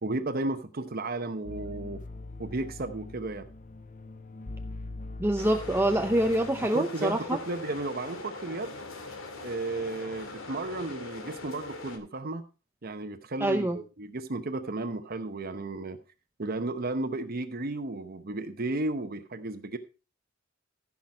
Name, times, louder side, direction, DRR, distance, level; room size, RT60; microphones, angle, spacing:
voice 1, 0.0-2.0 2.4-3.5 6.7-8.7 9.4-12.5 12.8-16.0 16.4-19.8, right 2 dB, 50° right, 8 dB, 0.9 m, -33 dB
sound 1, 1.5-6.7, left 2 dB, 40° left, 0.7 m, -42 dB
voice 2, 5.2-7.4 13.4-13.8, right 1 dB, 10° right, 6 dB, 0.6 m, -26 dB
sound 2, 5.4-12.0, left 3 dB, 80° left, 2.3 m, -41 dB
15.0 x 6.0 x 4.6 m, 0.32 s
head